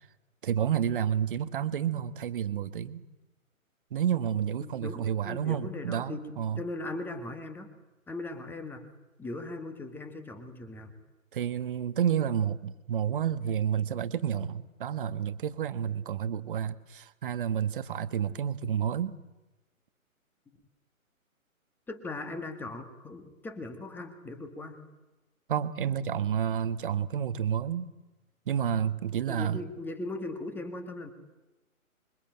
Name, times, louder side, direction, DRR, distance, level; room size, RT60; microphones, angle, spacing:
voice 1, 0.4-3.0 3.9-6.6 11.3-19.2 25.5-27.9 28.5-29.6, right 9 dB, 40° right, 13 dB, 1.4 m, -30 dB
voice 2, 4.6-7.7 8.1-8.9 9.2-10.9 21.9-24.8 29.3-31.1, left 2 dB, 5° left, 9 dB, 1.7 m, -39 dB
26.0 x 23.5 x 9.0 m, 1.1 s
figure-of-eight pair, 135°, 42 cm